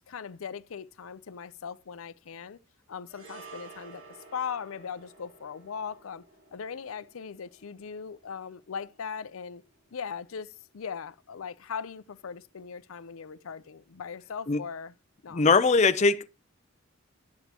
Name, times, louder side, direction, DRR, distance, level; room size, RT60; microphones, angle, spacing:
voice 1, 0.0-2.6 2.9-4.0 4.3-6.2 6.5-9.6 9.9-14.9 15.2-15.5, left 6 dB, 85° left, 0.5 m, -39 dB
sound 1, 3.1-11.5 11.8-12.0, right 4 dB, 75° right, 6.0 m, -53 dB
voice 2, 15.3-16.3, left 4 dB, 35° left, 0.5 m, -21 dB
11.5 x 8.0 x 2.9 m
head